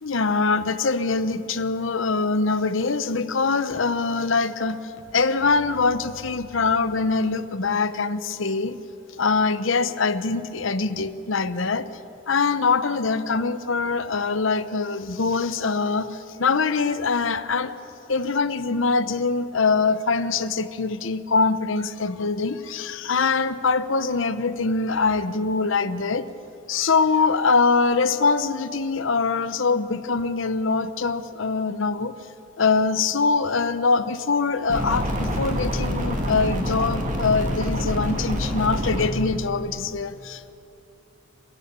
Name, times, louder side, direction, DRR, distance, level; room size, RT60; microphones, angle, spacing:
voice 1, 0.0-8.8 9.2-11.9 12.3-17.7 18.1-26.3 26.7-32.1 32.6-40.5, left 4 dB, 70° left, 13 dB, 0.8 m, -23 dB
sound 1, 34.7-39.1, equal, 35° right, 2.6 m, -26 dB
29.0 x 15.0 x 6.9 m, 2.8 s
head